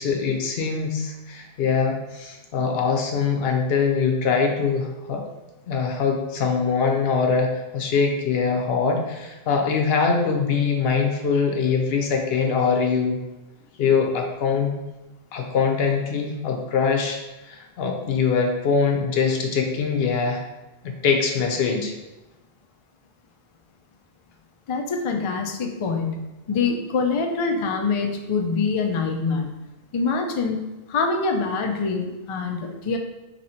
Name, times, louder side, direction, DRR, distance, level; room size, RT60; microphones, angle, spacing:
voice 1, 0.0-5.2 5.7-13.2 13.8-14.7 15.3-17.2 17.5-20.4 20.8-21.9, left 5 dB, 75° left, 2 dB, 0.8 m, -23 dB
voice 2, 24.7-29.5 29.9-33.0, left 4 dB, 55° left, 3 dB, 0.3 m, -25 dB
3.0 x 2.8 x 4.2 m, 1.0 s
omnidirectional pair, 1.0 m